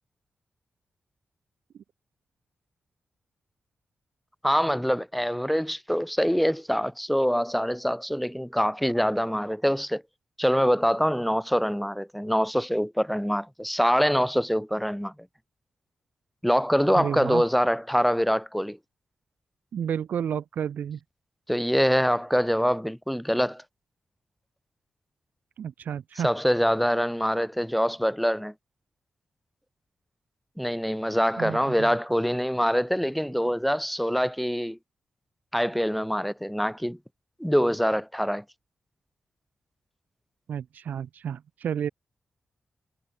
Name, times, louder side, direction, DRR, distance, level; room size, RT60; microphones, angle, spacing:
voice 1, 4.4-10.0 10.4-15.1 16.4-18.8 21.5-23.6 26.2-28.5 30.6-34.8 35.5-37.0 37.4-38.4, equal, ahead, 3.6 m, -24 dB
voice 2, 16.9-17.5 19.7-21.0 25.6-26.3 31.4-31.9 40.5-41.9, right 8 dB, 90° right, 6.7 m, -31 dB
cardioid pair, 75°, 3 cm